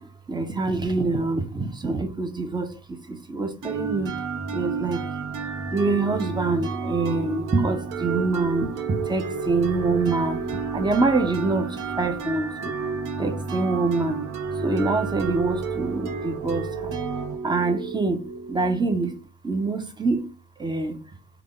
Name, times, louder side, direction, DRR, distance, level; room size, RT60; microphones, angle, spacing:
voice 1, 0.3-2.7 3.1-4.1 4.5-5.0 5.7-8.7 9.1-10.4 10.7-11.7 12.0-12.7 13.2-14.2 14.6-16.9 17.4-18.2 18.5-19.1 19.4-20.2 20.6-20.9, right 3 dB, 15° right, 0.6 m, -25 dB
sound 1, 3.6-19.2, right 5 dB, 85° right, 0.8 m, -31 dB
3.5 x 2.3 x 3.6 m
cardioid pair, 115°, 31 cm